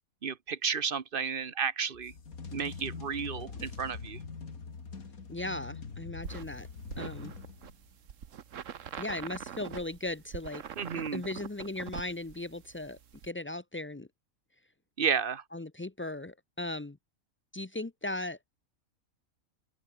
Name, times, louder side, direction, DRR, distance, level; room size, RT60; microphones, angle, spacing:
voice 1, 0.2-2.1 2.5-4.2 10.8-11.2 15.0-15.4, right 6 dB, 40° right, 1.2 m, -32 dB
sound 1, 1.9-7.9, left 5 dB, 85° left, 2.8 m, -43 dB
voice 2, 5.3-6.7 7.0-7.3 9.0-10.6 11.1-13.0 13.2-14.1 15.5-17.0 17.5-18.4, left 2 dB, 20° left, 0.3 m, -37 dB
sound 2, 6.2-13.3, right 8 dB, 65° right, 1.4 m, -44 dB
open air
omnidirectional pair, 1.5 m